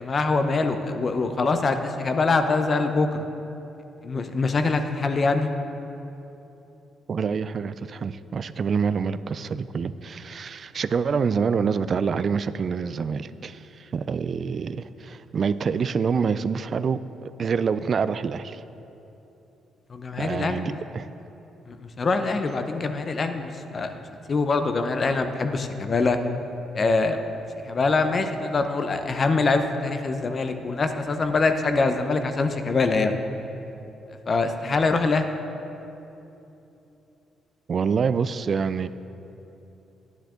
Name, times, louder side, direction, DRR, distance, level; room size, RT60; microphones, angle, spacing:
voice 1, 0.0-3.1 4.0-5.5 19.9-20.7 21.7-24.0 24.3-26.2 26.7-27.2 27.6-33.2 34.3-35.3, left 3 dB, 40° left, 0.8 m, -24 dB
voice 2, 7.1-18.6 20.2-21.1 37.7-38.9, right 6 dB, 50° right, 0.3 m, -26 dB
11.0 x 10.5 x 3.8 m
cardioid pair, 90°, 0 cm